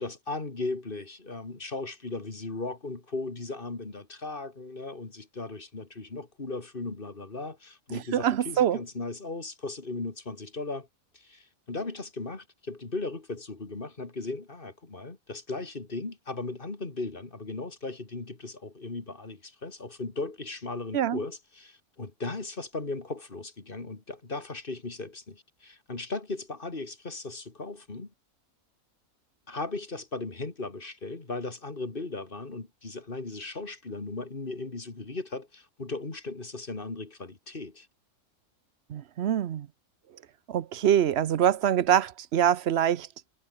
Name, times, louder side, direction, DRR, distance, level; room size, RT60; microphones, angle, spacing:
voice 1, 0.0-10.9 11.1-28.1 29.5-37.9, left 3 dB, 35° left, 2.6 m, -37 dB
voice 2, 7.9-8.8 20.9-21.2 38.9-39.7 40.5-43.1, right 10 dB, 55° right, 0.8 m, -24 dB
omnidirectional pair, 1.5 m